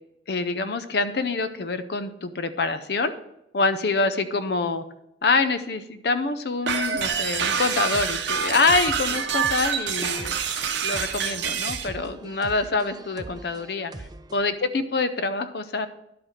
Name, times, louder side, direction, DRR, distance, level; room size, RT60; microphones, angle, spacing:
voice 1, 0.3-3.1 3.5-4.8 5.2-10.4 10.8-13.9 14.3-15.9, left 3 dB, 60° left, 11 dB, 0.6 m, -25 dB
sound 1, 6.7-11.9, right 7 dB, 75° right, 0.8 m, -26 dB
sound 2, 7.9-14.5, right 2 dB, 20° right, 0.4 m, -42 dB
11.0 x 4.6 x 4.9 m, 0.82 s
head